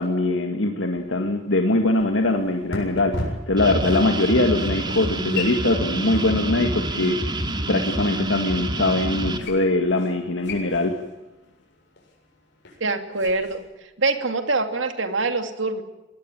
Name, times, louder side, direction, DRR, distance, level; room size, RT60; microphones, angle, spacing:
voice 1, 0.0-11.0, left 2 dB, 80° left, 4 dB, 2.0 m, -22 dB
sound 1, 0.9-13.6, left 2 dB, 65° left, 7.5 m, -39 dB
sound 2, 3.6-9.4, right 1 dB, 25° right, 2.4 m, -27 dB
voice 2, 12.8-13.6 14.0-15.8, right 3 dB, 75° right, 7 dB, 2.6 m, -24 dB
23.0 x 18.0 x 9.2 m, 1.1 s
head